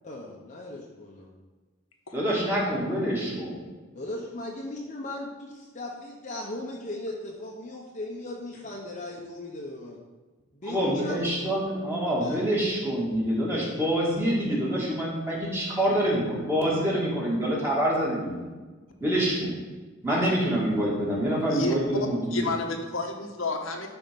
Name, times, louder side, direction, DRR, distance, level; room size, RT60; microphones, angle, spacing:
voice 1, 0.0-1.3 3.9-10.0 10.5-11.2 12.2-12.4, left 1 dB, 35° left, -1 dB, 1.0 m, -37 dB
voice 2, 2.1-3.6 10.7-18.4 19.0-19.5 20.0-22.5, equal, 10° right, -5 dB, 2.5 m, -26 dB
voice 3, 21.5-23.9, left 2 dB, 80° left, 2 dB, 1.2 m, -31 dB
11.5 x 4.5 x 5.4 m, 1.3 s
head